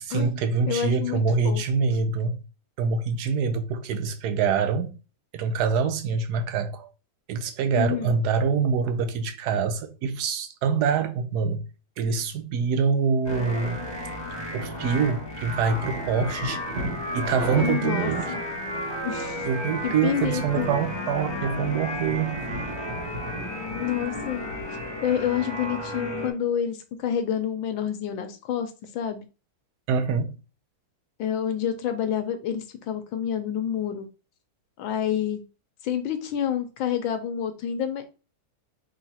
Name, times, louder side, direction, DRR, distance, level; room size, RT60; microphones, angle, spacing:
voice 1, 0.0-2.4 2.8-4.9 5.3-6.9 7.3-11.6 12.0-13.8 14.5-16.6 17.1-18.3 19.4-22.4 29.9-30.4, right 5 dB, 70° right, 1.0 m, -25 dB
voice 2, 0.7-1.6 7.8-8.2 17.6-18.4 19.0-19.4 19.8-20.7 23.7-24.5 25.0-29.3 31.2-34.1 34.8-35.4 35.8-38.0, left 9 dB, 75° left, 1.3 m, -28 dB
sound 1, 13.2-26.3, left 1 dB, 15° left, 1.3 m, -33 dB
sound 2, 15.7-25.3, right 1 dB, 50° right, 1.6 m, -37 dB
4.8 x 3.8 x 2.8 m
omnidirectional pair, 2.3 m